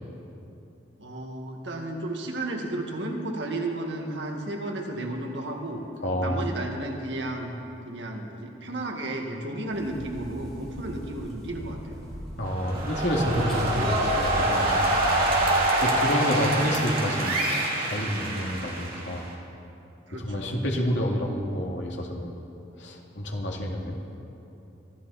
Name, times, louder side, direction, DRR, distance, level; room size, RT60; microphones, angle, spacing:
voice 1, 1.0-5.8 6.2-7.5 7.9-12.0 20.1-20.5, right 2 dB, 75° right, 1 dB, 1.9 m, -33 dB
voice 2, 6.0-6.6 12.4-15.2 15.8-17.4 17.9-19.3 20.1-22.4 22.8-24.0, equal, 80° left, 0 dB, 2.3 m, -28 dB
sound 1, 9.7-15.5, equal, ahead, 4.6 m, -38 dB
sound 2, 12.4-19.3, right 1 dB, 50° right, 2.6 m, -26 dB
25.0 x 12.5 x 4.2 m, 2.8 s
head